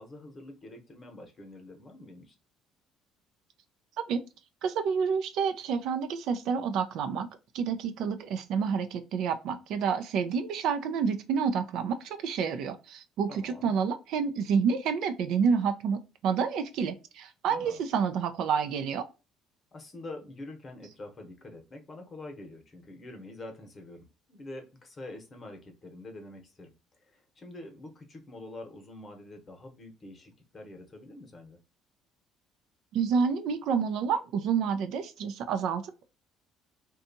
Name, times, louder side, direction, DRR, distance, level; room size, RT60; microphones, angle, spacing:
voice 1, 0.0-2.4 13.3-13.7 17.5-17.8 19.7-26.7 27.0-31.6, left 2 dB, 30° left, 0.9 m, -46 dB
voice 2, 4.6-7.3 7.5-19.0 32.9-36.0, right 6 dB, 70° right, 0.4 m, -29 dB
2.7 x 2.3 x 2.6 m
cardioid pair, 120°, 0 cm